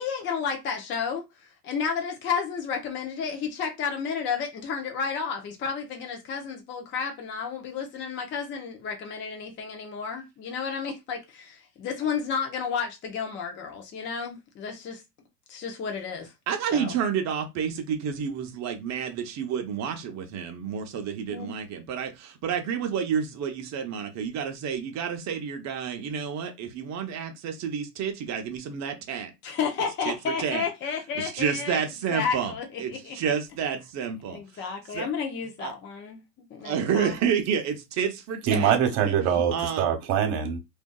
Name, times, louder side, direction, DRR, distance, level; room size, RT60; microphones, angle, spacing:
voice 1, 0.0-15.0 15.5-16.3 16.7-16.9 21.3-21.5 29.4-31.8 32.1-33.2 34.3-36.2 36.5-37.2, left 6 dB, 25° left, 0.5 m, -32 dB
voice 2, 16.5-29.3 30.1-30.7 31.2-32.5 32.8-34.4 34.9-35.1 35.6-35.7 36.6-38.7 39.1-39.2 39.5-39.9, right 7 dB, 35° right, 0.6 m, -29 dB
voice 3, 38.5-40.6, right 8 dB, 60° right, 1.0 m, -23 dB
2.6 x 2.3 x 2.2 m
hypercardioid pair, 100°, 48 cm